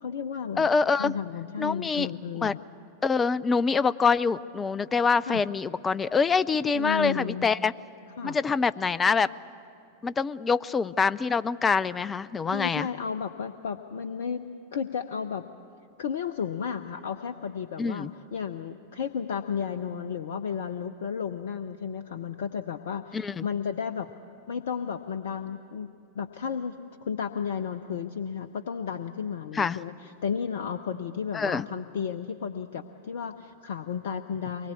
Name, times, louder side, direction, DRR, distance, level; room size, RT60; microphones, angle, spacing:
voice 1, 0.0-2.6 5.3-5.4 6.7-7.5 8.2-8.4 12.5-15.5 16.0-24.1 24.5-34.7, left 7 dB, 60° left, 11 dB, 0.7 m, -33 dB
voice 2, 0.6-1.1 1.6-2.1 2.4-2.5 3.0-7.7 8.2-9.3 10.0-12.9 17.8-18.1 23.1-23.5 29.5-29.8 31.3-31.7, left 5 dB, 15° left, 18 dB, 0.5 m, -25 dB
24.0 x 20.5 x 8.5 m, 2.5 s
figure-of-eight pair, 90°, 0 cm